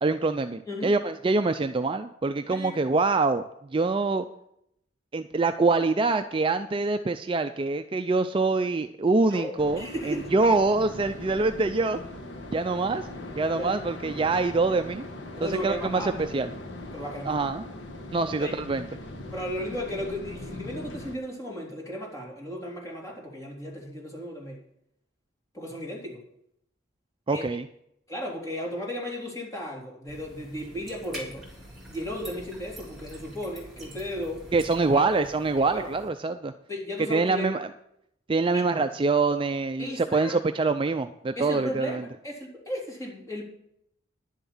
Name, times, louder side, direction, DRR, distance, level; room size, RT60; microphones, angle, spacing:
voice 1, 0.0-3.4 3.7-4.3 5.1-12.0 12.5-13.1 13.4-15.0 15.4-16.5 17.2-17.6 18.1-18.8 27.3-27.7 34.5-36.5 37.1-37.7 38.3-42.0, right 3 dB, 25° right, 8 dB, 0.4 m, -25 dB
voice 2, 9.3-10.3 13.5-13.8 15.4-16.2 16.9-17.5 18.4-18.5 19.3-24.6 25.5-26.2 27.3-27.5 28.1-31.4 31.9-34.7 34.9-35.0 35.7-35.9 36.7-37.5 38.5-38.6 39.8-40.4 41.4-43.4, left 1 dB, 15° left, -3 dB, 3.5 m, -35 dB
sound 1, 9.6-21.2, left 1 dB, 65° left, 1.4 m, -40 dB
sound 2, 30.1-36.1, right 1 dB, ahead, 3.4 m, -45 dB
11.0 x 7.4 x 7.1 m, 0.76 s
head